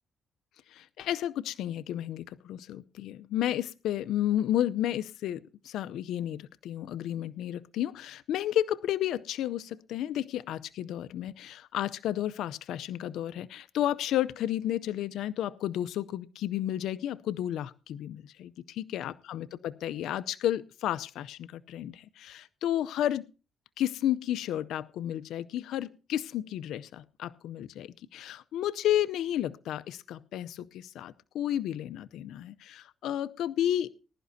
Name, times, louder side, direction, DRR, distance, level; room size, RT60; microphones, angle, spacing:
voice 1, 0.7-18.5 18.8-23.3 23.8-34.1, left 12 dB, 80° left, 13 dB, 0.6 m, -32 dB
20.0 x 11.5 x 2.7 m, 0.34 s
cardioid pair, 90°, 0 cm